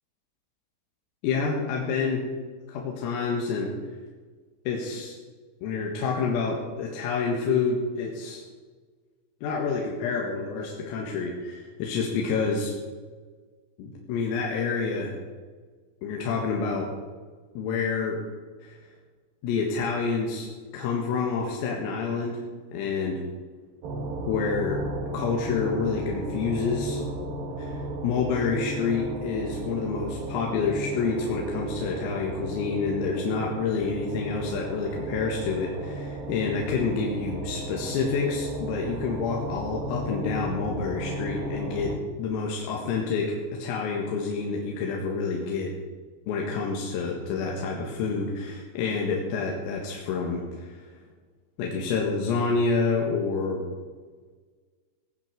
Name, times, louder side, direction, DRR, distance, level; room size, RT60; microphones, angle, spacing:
voice 1, 1.2-2.3 2.7-3.7 4.7-5.2 5.6-8.4 9.4-12.7 13.8-15.1 16.0-16.9 17.6-18.2 18.6-18.8 19.4-20.5 20.7-22.4 22.7-23.2 24.3-24.8 25.1-27.1 27.6-41.9 42.2-43.3 43.6-45.7 46.3-50.8 51.6-53.6, left 4 dB, 80° left, -1 dB, 4.4 m, -28 dB
sound 1, 23.8-42.0, right 1 dB, 55° right, 3.1 m, -35 dB
18.5 x 9.3 x 6.8 m, 1.5 s
omnidirectional pair, 6.0 m